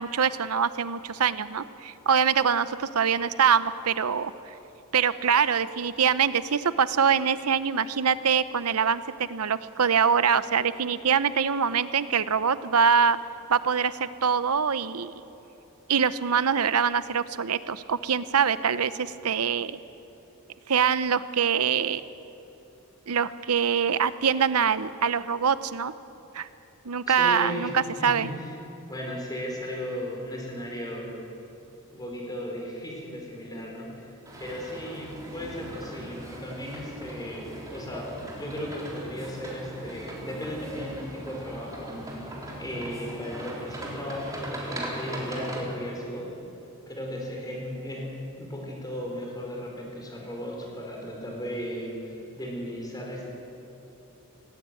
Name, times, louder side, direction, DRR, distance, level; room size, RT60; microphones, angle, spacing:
voice 1, 0.0-4.5 4.9-13.2 13.5-15.1 15.9-19.8 20.7-22.0 23.1-25.9 26.3-26.5 26.8-28.3, right 7 dB, 90° right, 14 dB, 0.7 m, -24 dB
voice 2, 27.1-27.7 28.0-28.5 28.9-31.1 31.9-34.1 34.4-46.3 46.9-53.3, equal, 20° left, -1 dB, 4.7 m, -36 dB
sound 1, 34.2-45.6, right 1 dB, 15° right, 3.7 m, -40 dB
19.0 x 17.0 x 9.2 m, 3.0 s
head